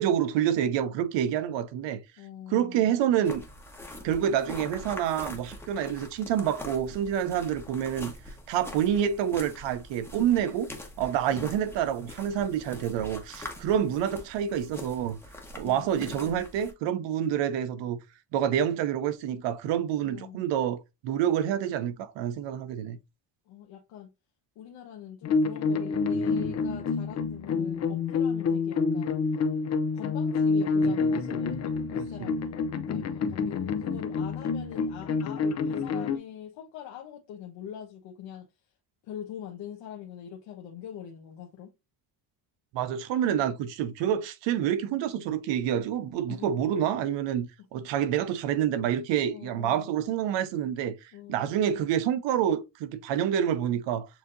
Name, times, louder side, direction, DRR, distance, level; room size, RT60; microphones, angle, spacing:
voice 1, 0.0-2.0 2.5-3.5 4.0-8.1 8.5-10.7 11.0-15.2 15.5-18.0 18.3-23.0 32.0-32.3 42.7-54.1, right 9 dB, 85° right, 0.8 m, -28 dB
voice 2, 2.2-2.9 11.3-12.1 15.6-16.5 20.0-20.5 23.5-24.1 24.5-29.2 29.9-38.6 39.0-41.7 46.3-46.5 47.7-47.8 49.3-49.9 51.1-51.5, left 10 dB, 90° left, 1.1 m, -43 dB
sound 1, 3.2-16.7, left 1 dB, 5° left, 1.1 m, -44 dB
sound 2, 25.2-36.2, left 4 dB, 40° left, 0.6 m, -28 dB
7.2 x 2.8 x 2.5 m
cardioid pair, 135°, 42 cm